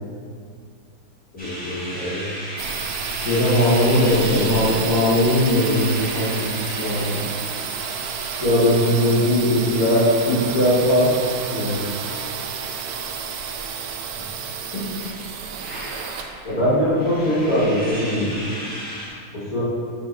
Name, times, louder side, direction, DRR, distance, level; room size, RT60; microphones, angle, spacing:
voice 1, 1.3-2.2 4.3-4.5 8.3-11.1 16.4-18.3 19.3-19.6, equal, 70° left, -9 dB, 2.1 m, -20 dB
sound 1, 1.4-19.1, equal, 5° left, 1.5 m, -37 dB
sound 2, 2.6-18.2, right 6 dB, 80° right, 1.1 m, -30 dB
voice 2, 3.2-7.2 11.5-11.8, left 1 dB, 90° left, -7 dB, 1.7 m, -20 dB
6.5 x 4.3 x 4.4 m, 2.2 s
omnidirectional pair, 1.6 m